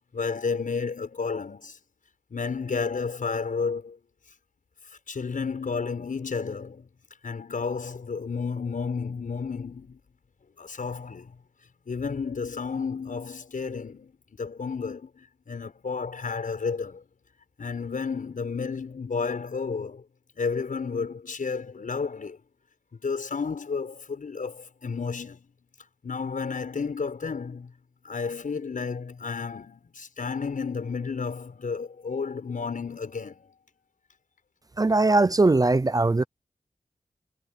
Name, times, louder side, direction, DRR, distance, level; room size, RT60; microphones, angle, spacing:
voice 1, 0.1-1.8 2.3-4.0 5.1-6.9 7.2-10.0 10.6-11.3 11.9-17.0 17.6-20.0 20.4-22.4 22.9-25.5 26.0-27.7 28.0-33.4, left 5 dB, 75° left, 6.5 m, -32 dB
voice 2, 34.8-36.2, right 2 dB, 25° right, 0.5 m, -20 dB
wide cardioid pair, 85°, 14 cm